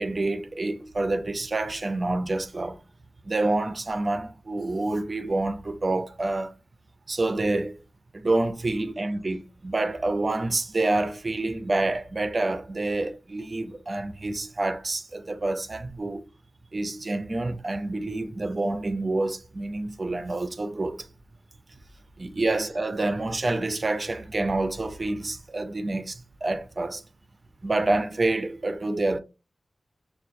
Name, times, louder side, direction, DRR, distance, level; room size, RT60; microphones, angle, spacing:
voice 1, 0.0-2.8 3.2-6.5 7.1-7.8 8.1-16.3 16.7-21.1 22.2-27.0 27.6-29.2, right 2 dB, 40° right, 0.5 m, -27 dB
5.4 x 2.3 x 2.5 m
wide cardioid pair, 65°, 0 cm